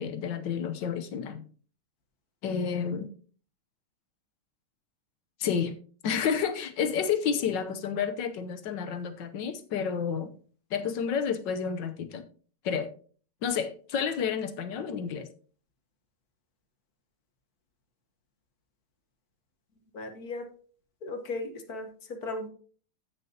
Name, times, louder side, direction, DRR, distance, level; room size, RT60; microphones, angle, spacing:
voice 1, 0.0-1.4 2.4-3.1 5.4-5.7 6.0-10.3 10.7-12.3 12.6-12.9 13.4-15.3, left 7 dB, 65° left, 1.5 m, -30 dB
voice 2, 19.9-20.5 21.0-22.5, left 2 dB, 50° left, 1.7 m, -36 dB
14.0 x 6.6 x 2.9 m
omnidirectional pair, 2.3 m